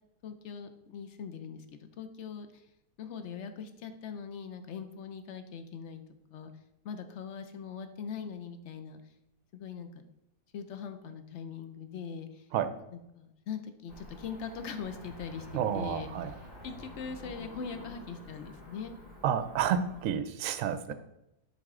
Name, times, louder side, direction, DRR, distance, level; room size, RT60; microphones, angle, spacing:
voice 1, 0.2-2.5 3.0-6.0 6.3-6.5 6.8-9.0 9.5-9.9 10.5-12.4 12.9-18.9 20.9-21.0, left 6 dB, 60° left, 9 dB, 0.8 m, -41 dB
Cricket / Motor vehicle (road), 13.9-20.1, left 2 dB, 85° left, 3.7 m, -48 dB
voice 2, 15.5-16.3 19.2-20.9, right 8 dB, 65° right, 11 dB, 0.9 m, -30 dB
7.8 x 5.4 x 3.7 m, 0.86 s
omnidirectional pair, 1.7 m